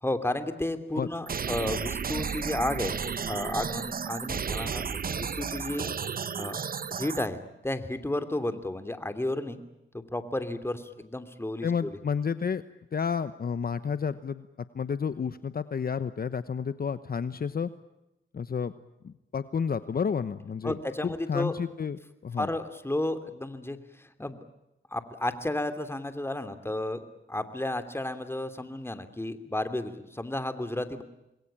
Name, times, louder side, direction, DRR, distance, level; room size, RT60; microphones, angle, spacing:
voice 1, 0.0-3.0 3.3-5.9 6.4-6.6 6.9-9.6 9.9-12.0 20.6-21.6 22.4-24.4 24.9-31.0, left 1 dB, 10° left, 9 dB, 2.9 m, -32 dB
sound 1, 1.3-7.3, right 6 dB, 45° right, 0.9 m, -33 dB
voice 2, 11.6-12.6 12.9-17.7 18.3-18.7 19.0-20.8 21.0-22.5, left 6 dB, 50° left, 13 dB, 1.0 m, -31 dB
27.5 x 21.5 x 8.8 m, 0.91 s
cardioid pair, 80°, 20 cm